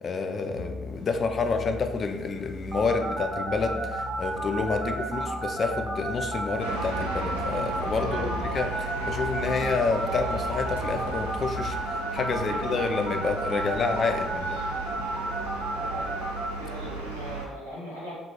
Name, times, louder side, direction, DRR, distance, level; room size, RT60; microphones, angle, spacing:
voice 1, 0.0-8.3 8.5-14.6, left 4 dB, 40° left, 6 dB, 0.3 m, -29 dB
sound 1, 0.5-11.8, left 3 dB, 65° left, 1.2 m, -40 dB
sound 2, 2.7-16.4, right 3 dB, 10° right, 0.8 m, -33 dB
sound 3, 6.6-17.5, right 3 dB, 90° right, 0.4 m, -36 dB
voice 2, 8.1-8.6 12.3-12.6 13.4-14.3 14.7-15.3 15.8-16.1 16.6-18.1, equal, 90° left, -8 dB, 0.8 m, -41 dB
2.4 x 2.4 x 3.1 m, 1.2 s
figure-of-eight pair, 50°, 0 cm